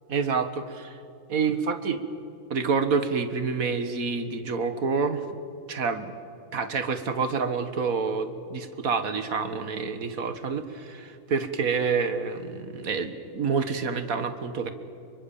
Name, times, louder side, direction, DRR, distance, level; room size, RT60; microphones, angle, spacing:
voice 1, 0.1-1.0 1.3-2.0 2.5-5.2 5.7-6.1 6.5-14.7, right 5 dB, 75° right, 10 dB, 2.0 m, -28 dB
26.0 x 23.5 x 7.2 m, 2.7 s
omnidirectional pair, 1.5 m